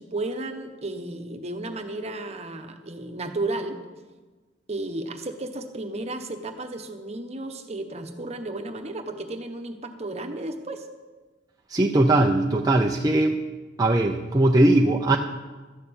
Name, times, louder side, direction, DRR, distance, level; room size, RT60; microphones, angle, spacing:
voice 1, 0.0-3.8 4.7-10.9, right 2 dB, 35° right, 6 dB, 1.1 m, -33 dB
voice 2, 11.7-13.4 13.8-15.2, right 1 dB, 20° right, 1 dB, 0.6 m, -20 dB
13.0 x 6.6 x 8.7 m, 1.3 s
head